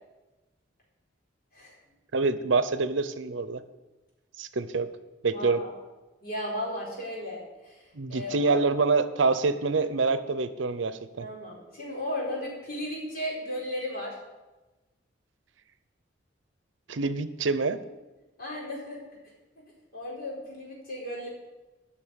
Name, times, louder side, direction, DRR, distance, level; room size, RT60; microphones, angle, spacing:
voice 1, 2.1-3.6 4.4-4.9 5.2-5.6 7.9-11.3 16.9-17.8, right 4 dB, 80° right, 13 dB, 0.7 m, -26 dB
voice 2, 5.3-5.7 6.2-7.4 7.6-7.8 8.1-8.6 11.2-14.2 18.4-19.0 19.9-21.3, left 1 dB, 50° left, -4 dB, 4.5 m, -35 dB
10.0 x 6.4 x 8.8 m, 1.1 s
head